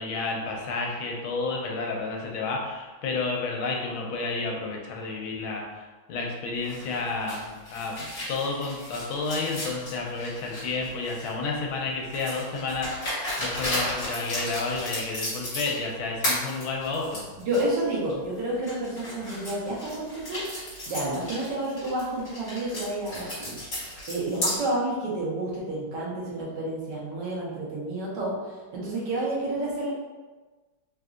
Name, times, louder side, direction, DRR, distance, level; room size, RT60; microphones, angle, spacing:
voice 1, 0.0-7.9 8.3-13.1 13.4-17.3, left 3 dB, 80° left, -1 dB, 1.4 m, -31 dB
sound 1, 6.6-11.4 12.1-15.9 16.2-17.6 18.1-18.2 18.6-24.6, left 1 dB, 35° left, 1.5 m, -34 dB
voice 2, 17.5-20.4 20.9-23.5 24.1-28.3 28.7-29.9, right 1 dB, 65° right, -5 dB, 1.4 m, -30 dB
3.8 x 2.6 x 2.4 m, 1.3 s
omnidirectional pair, 2.3 m